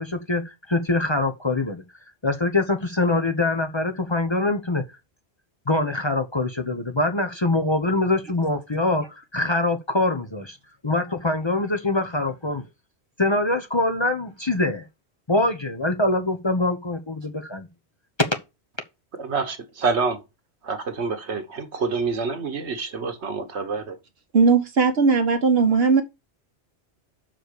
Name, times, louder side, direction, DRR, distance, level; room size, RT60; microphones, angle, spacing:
voice 1, 0.0-1.8 2.2-4.8 5.7-10.6 10.8-12.6 13.2-14.9 15.3-17.7, left 2 dB, 25° left, 0.9 m, -24 dB
voice 2, 19.2-20.2 20.6-24.0, right 4 dB, 85° right, 1.5 m, -27 dB
voice 3, 24.3-26.0, right 5 dB, 65° right, 1.5 m, -18 dB
6.0 x 5.0 x 6.6 m
omnidirectional pair, 1.1 m